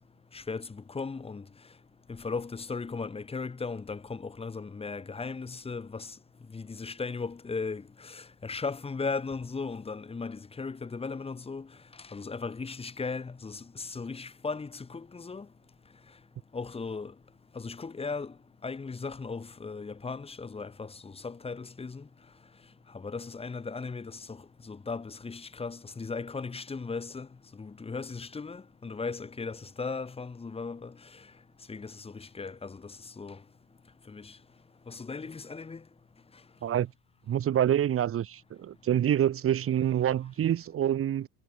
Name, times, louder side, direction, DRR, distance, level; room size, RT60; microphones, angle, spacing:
voice 1, 0.3-1.4 2.1-6.2 6.5-11.7 12.0-15.5 16.5-17.1 17.5-18.3 18.6-22.1 22.9-27.3 27.6-31.2 31.7-33.4 34.1-34.4 34.9-35.8, left 4 dB, 15° left, 7.4 m, -37 dB
voice 2, 37.3-41.3, right 10 dB, 35° right, 6.6 m, -26 dB
cardioid pair, 150°, 38 cm